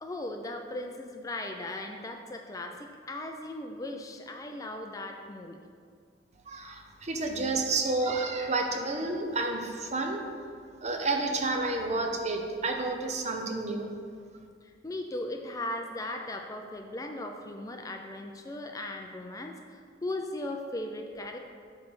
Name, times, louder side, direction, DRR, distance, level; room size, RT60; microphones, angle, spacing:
voice 1, 0.0-5.6 14.6-21.4, left 1 dB, 20° left, 4 dB, 0.3 m, -38 dB
voice 2, 6.5-10.2 10.8-13.9, right 3 dB, 35° right, 3 dB, 0.7 m, -30 dB
8.0 x 3.2 x 6.1 m, 2.1 s
head